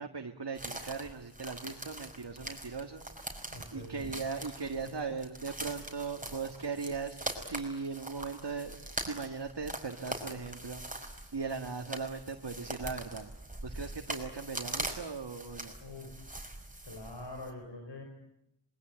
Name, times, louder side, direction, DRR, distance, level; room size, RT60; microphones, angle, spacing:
voice 1, 0.0-3.1 3.4-7.2 7.4-10.8 11.3-13.3 13.6-15.7, right 4 dB, 70° right, 4 dB, 1.9 m, -39 dB
sound 1, 0.6-17.5, right 1 dB, 20° right, 5.6 m, -42 dB
voice 2, 3.5-4.1 15.8-16.1 16.8-18.0, left 1 dB, 80° left, 3 dB, 5.4 m, -44 dB
26.5 x 22.5 x 8.9 m, 0.80 s
wide cardioid pair, 50°, 42 cm